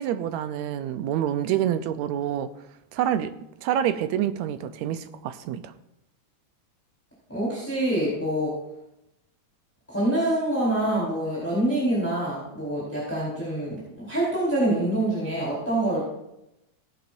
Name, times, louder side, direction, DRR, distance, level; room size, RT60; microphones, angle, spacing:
voice 1, 0.0-2.5 2.9-3.3 3.6-5.6, right 10 dB, 75° right, 10 dB, 1.9 m, -27 dB
voice 2, 7.3-8.5 9.9-16.0, right 1 dB, 5° left, -8 dB, 4.2 m, -26 dB
18.0 x 10.5 x 2.6 m, 0.86 s
omnidirectional pair, 3.4 m